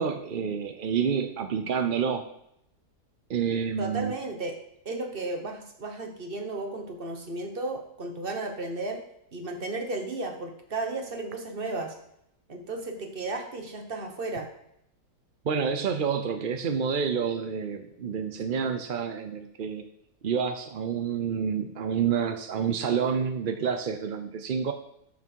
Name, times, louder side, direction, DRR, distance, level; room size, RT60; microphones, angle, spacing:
voice 1, 0.0-2.3 3.3-4.1 15.4-19.8 20.2-24.7, right 6 dB, 55° right, 7 dB, 0.5 m, -28 dB
voice 2, 3.8-4.5 4.8-9.0 9.3-11.9 12.5-14.5, right 2 dB, 35° right, 4 dB, 1.5 m, -34 dB
13.0 x 6.1 x 4.6 m, 0.76 s
omnidirectional pair, 1.8 m